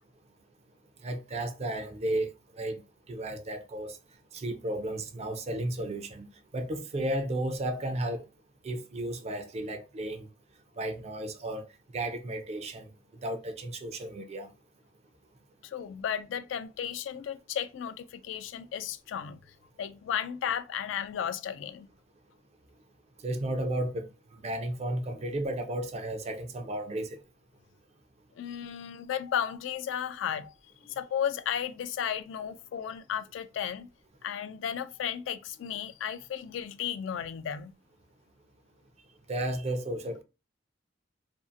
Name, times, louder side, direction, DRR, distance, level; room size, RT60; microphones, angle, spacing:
voice 1, 1.0-4.0 4.3-6.3 6.5-8.2 8.6-10.3 10.8-11.7 11.9-12.9 13.2-14.5 23.2-27.2 39.3-40.2, right 1 dB, 35° right, 0.4 m, -33 dB
voice 2, 15.6-19.4 19.8-21.9 28.4-30.5 30.8-33.9 34.2-37.7, left 9 dB, 75° left, 0.3 m, -34 dB
2.6 x 2.4 x 2.5 m
head